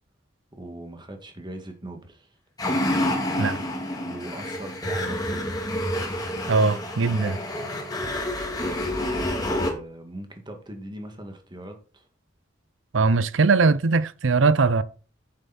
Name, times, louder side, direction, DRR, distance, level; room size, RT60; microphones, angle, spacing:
voice 1, 0.5-2.3 4.0-5.6 8.6-12.1, right 1 dB, 25° right, 2.0 m, -40 dB
sound 1, 2.6-9.7, left 1 dB, 20° left, 2.4 m, -28 dB
voice 2, 6.5-7.4 12.9-14.8, right 4 dB, 85° right, 0.6 m, -20 dB
9.0 x 7.2 x 4.3 m
head